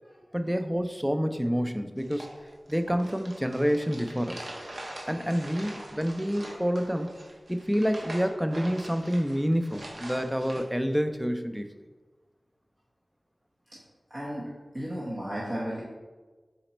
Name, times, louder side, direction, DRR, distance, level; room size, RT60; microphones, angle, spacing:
voice 1, 0.3-2.3 2.7-4.4 5.1-7.1 7.5-11.7, equal, 5° right, 7 dB, 0.3 m, -28 dB
sound 1, 2.0-10.6, right 1 dB, 70° right, 0.7 m, -43 dB
voice 2, 14.1-15.8, equal, 35° right, -8 dB, 0.9 m, -34 dB
4.2 x 2.9 x 4.2 m, 1.3 s
wide cardioid pair, 75°, 0 cm